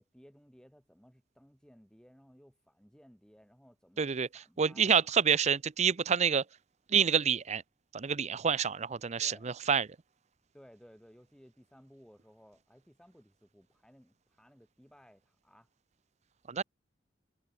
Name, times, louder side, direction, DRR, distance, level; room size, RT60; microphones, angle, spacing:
voice 1, 0.0-5.1 9.2-9.5 10.5-15.7, equal, 5° left, 7.9 m, -59 dB
voice 2, 4.0-4.3 4.6-6.4 6.9-7.6 7.9-9.9 16.5-16.6, right 7 dB, 40° right, 0.6 m, -27 dB
head